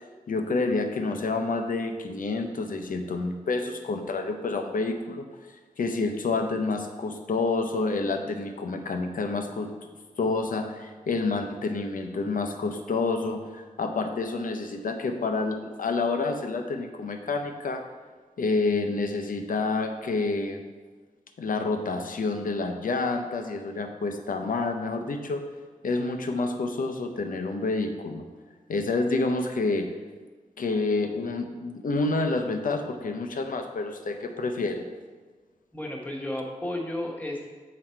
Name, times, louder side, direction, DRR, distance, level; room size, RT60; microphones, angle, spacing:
voice 1, 0.3-5.3 5.8-9.7 10.2-17.8 18.4-20.6 21.4-25.4 25.8-28.3 28.7-29.9 30.6-34.9, left 3 dB, 85° left, 5 dB, 0.7 m, -28 dB
voice 2, 35.7-37.4, left 1 dB, 10° left, -2 dB, 1.1 m, -33 dB
7.4 x 4.1 x 4.5 m, 1.4 s
wide cardioid pair, 110°, 14 cm